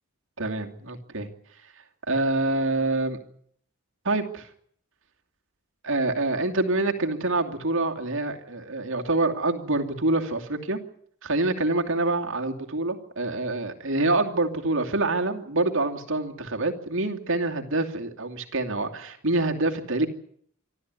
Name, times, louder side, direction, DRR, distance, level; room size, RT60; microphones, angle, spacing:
voice 1, 0.4-1.3 2.1-3.2 4.0-4.5 5.8-10.8 11.2-20.1, right 2 dB, 60° right, 4 dB, 2.6 m, -26 dB
25.5 x 14.0 x 9.6 m, 0.66 s
head